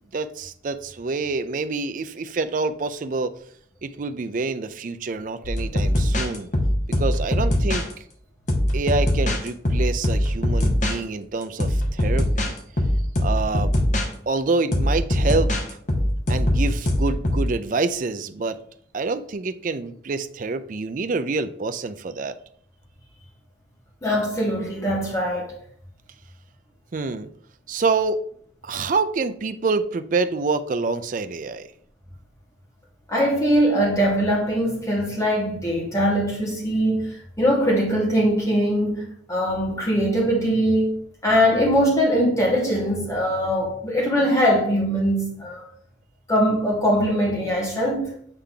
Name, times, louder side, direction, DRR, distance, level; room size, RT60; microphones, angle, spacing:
voice 1, 0.1-3.4 3.8-6.5 7.0-7.8 8.7-12.5 13.2-13.7 14.3-15.5 16.3-18.6 18.9-22.4 26.9-27.3 27.7-28.2 28.6-31.7, right 3 dB, 45° right, 0.4 m, -26 dB
sound 1, 5.4-7.9 8.5-11.0 11.4-14.1 14.7-17.5, left 1 dB, 40° left, 1.0 m, -22 dB
voice 2, 24.0-25.5 33.1-37.1 37.4-45.6 46.3-48.2, equal, 15° left, 1.8 m, -21 dB
8.2 x 3.4 x 3.8 m
head